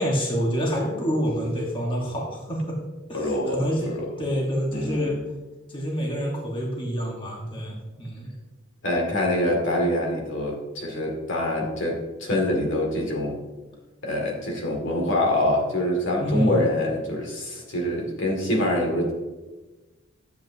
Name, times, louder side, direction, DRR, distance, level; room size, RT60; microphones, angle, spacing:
voice 1, 0.0-2.8 3.1-5.1 5.7-8.3 16.2-16.6, equal, 25° left, -2 dB, 1.3 m, -27 dB
voice 2, 3.1-4.1 4.7-5.2 8.8-13.4 14.0-19.1, left 1 dB, 70° left, 0 dB, 2.0 m, -25 dB
11.5 x 7.7 x 2.7 m, 1.2 s
head